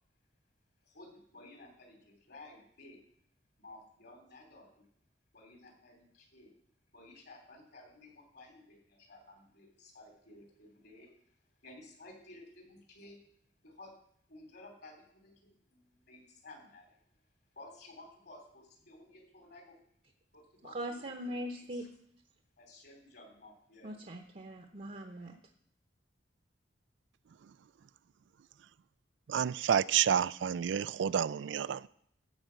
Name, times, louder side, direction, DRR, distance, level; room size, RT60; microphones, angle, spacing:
voice 1, 0.8-3.0 3.6-4.7 5.3-6.5 6.9-11.1 11.6-13.2 13.6-13.9 14.3-17.0 17.5-19.8 20.3-21.9 22.6-23.9, left 2 dB, 60° left, 2 dB, 3.3 m, -55 dB
voice 2, 20.6-21.9 23.8-25.4, equal, 45° right, 5 dB, 0.9 m, -41 dB
voice 3, 29.3-31.9, right 8 dB, 85° right, 20 dB, 0.4 m, -29 dB
13.5 x 4.9 x 7.6 m, 0.67 s
head